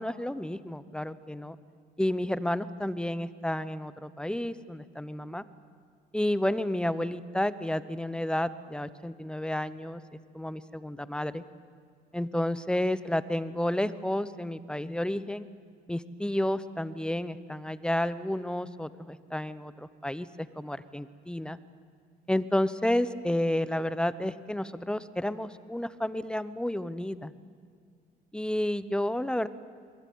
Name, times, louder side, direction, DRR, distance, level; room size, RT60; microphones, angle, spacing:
voice 1, 0.0-1.6 2.0-5.4 6.1-10.0 10.3-11.4 12.1-15.5 15.9-21.6 22.3-27.3 28.3-29.5, left 1 dB, 5° left, 15 dB, 0.9 m, -31 dB
24.0 x 22.0 x 9.4 m, 2.1 s
cardioid pair, 110°, 17 cm